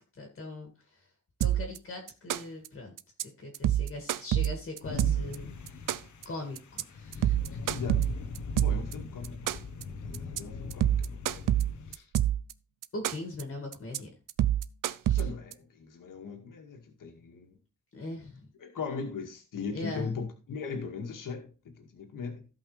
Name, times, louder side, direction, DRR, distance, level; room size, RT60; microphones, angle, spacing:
voice 1, 0.1-1.1 1.4-2.9 3.2-5.9 6.2-7.4 12.9-14.1 15.0-15.2 17.9-18.5 19.7-20.1, left 2 dB, 40° left, 2.2 m, -40 dB
sound 1, 1.4-1.8 2.1-2.7 3.0-3.2 3.5-5.4 5.7-6.2 6.6-6.8 7.1-8.9 9.2-9.8 10.1-10.4 10.7-12.5 12.8-13.4 13.7-14.0 14.3-15.5, right 12 dB, 85° right, 0.6 m, -27 dB
sound 2, 4.8-11.9, left 4 dB, 65° left, 1.2 m, -41 dB
voice 2, 7.7-8.1 8.6-9.4 9.9-11.5 11.9-12.1 15.1-17.6 18.6-22.4, left 5 dB, 85° left, 2.1 m, -39 dB
16.0 x 5.5 x 3.3 m
wide cardioid pair, 175°, 31 cm